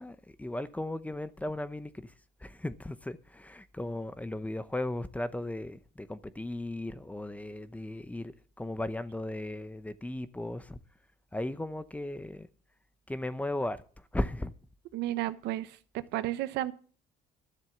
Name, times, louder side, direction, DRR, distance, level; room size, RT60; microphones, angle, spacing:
voice 1, 0.0-2.1 2.4-10.8 11.3-12.5 13.1-13.8 14.1-14.5, left 1 dB, 10° left, 0.8 m, -36 dB
voice 2, 14.9-16.7, right 15 dB, 85° right, 1.0 m, -33 dB
12.5 x 7.2 x 7.2 m
cardioid pair, 110°, 17 cm